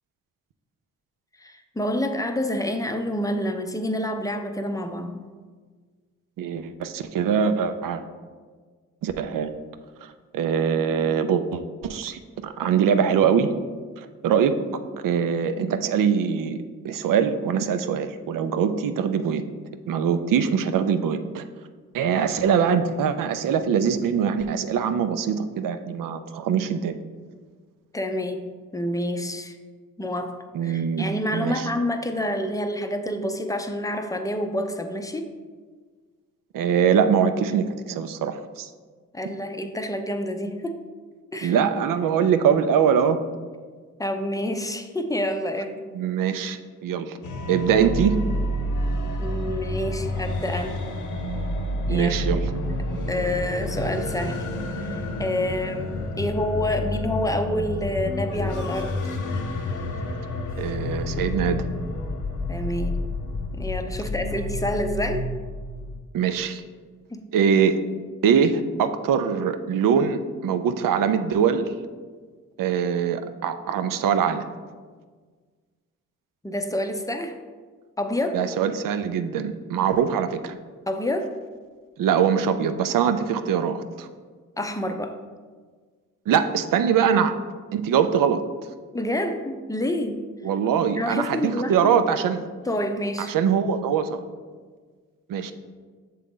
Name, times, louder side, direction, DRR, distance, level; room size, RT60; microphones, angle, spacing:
voice 1, 1.4-5.2 14.7-14.8 22.2-22.3 27.9-29.6 30.0-35.3 39.1-40.8 41.3-41.6 44.0-45.8 49.2-50.8 51.9-52.1 53.1-54.4 54.8-59.0 62.5-63.0 63.5-65.3 67.1-67.2 76.4-77.3 78.0-78.4 80.9-81.3 84.6-85.2 88.9-90.2 91.0-91.9 92.6-93.3, left 1 dB, 10° left, 7 dB, 0.5 m, -28 dB
voice 2, 6.4-8.0 9.0-9.5 10.0-13.5 14.0-14.5 15.0-16.6 16.8-19.4 19.9-21.4 21.9-27.0 30.5-31.1 31.3-31.7 36.5-38.7 41.4-43.2 45.9-47.2 47.5-48.2 51.9-52.5 60.6-61.7 66.1-66.6 67.3-67.8 68.2-71.7 72.6-74.5 78.3-80.5 82.0-84.1 86.3-87.4 87.7-88.4 90.4-92.5 93.2-94.2 95.3-95.5, right 7 dB, 80° right, 10 dB, 0.5 m, -23 dB
sound 1, 47.2-66.0, left 1 dB, 65° left, 0.7 m, -29 dB
6.9 x 3.7 x 3.6 m, 1.5 s
cardioid pair, 65°, 32 cm